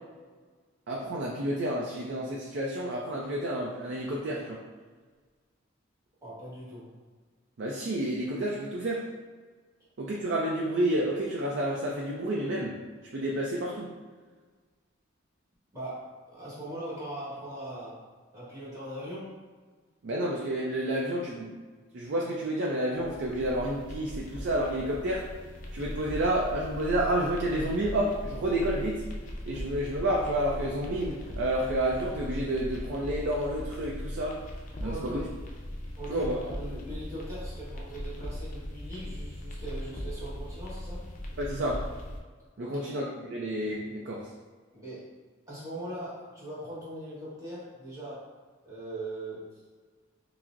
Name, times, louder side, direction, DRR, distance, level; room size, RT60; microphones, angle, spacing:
voice 1, 0.9-4.6 7.6-9.0 10.0-12.7 13.1-13.9 20.0-21.5 21.9-25.3 25.7-29.0 29.5-34.4 34.8-35.2 36.1-36.4 41.4-41.8 42.6-44.2, right 1 dB, 60° right, -3 dB, 0.4 m, -30 dB
voice 2, 6.2-6.9 15.7-18.0 18.3-19.3 34.8-35.3 36.0-41.1 42.6-42.9 44.7-45.1 45.5-48.3 48.6-49.5, right 1 dB, 15° right, -9 dB, 1.3 m, -40 dB
sound 1, 23.0-42.2, left 1 dB, 40° left, 0.5 m, -39 dB
5.8 x 2.0 x 2.5 m, 1.5 s
head